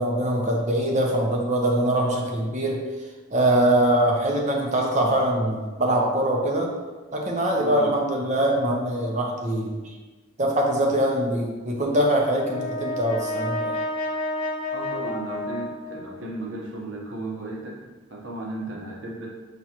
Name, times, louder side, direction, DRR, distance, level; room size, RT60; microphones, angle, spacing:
voice 1, 0.0-2.8 3.3-6.7 7.1-9.9 10.4-13.8, right 1 dB, 35° right, 0 dB, 0.6 m, -23 dB
voice 2, 7.6-7.9 14.7-19.3, right 1 dB, 65° right, -2 dB, 0.9 m, -35 dB
Brass instrument, 11.9-16.3, left 1 dB, 25° left, 0.7 m, -31 dB
5.9 x 3.0 x 2.8 m, 1.3 s
head